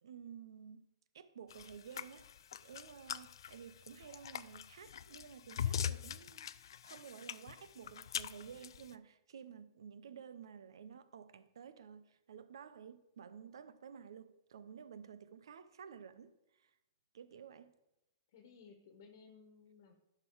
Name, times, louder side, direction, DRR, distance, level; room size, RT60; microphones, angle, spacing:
voice 1, 0.0-0.9 1.1-6.5 6.8-16.7 17.1-17.7, right 7 dB, 80° right, 0.7 m, -53 dB
sound 1, 1.5-8.9, left 9 dB, 75° left, 0.4 m, -42 dB
voice 2, 18.3-19.9, left 5 dB, 55° left, 1.3 m, -59 dB
11.0 x 6.0 x 4.7 m
hypercardioid pair, 150°, 2 cm